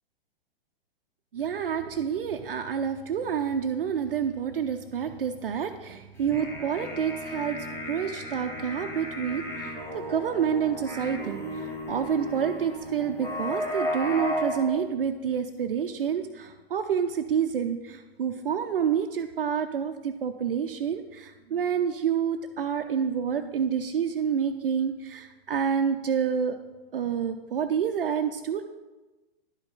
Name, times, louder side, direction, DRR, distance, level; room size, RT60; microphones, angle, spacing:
voice 1, 1.3-26.6 26.9-28.6, right 7 dB, 65° right, 6 dB, 0.5 m, -28 dB
sound 1, 6.2-14.7, left 1 dB, 10° left, 1.2 m, -34 dB
11.0 x 5.1 x 4.1 m, 1.2 s
figure-of-eight pair, 110°, 30 cm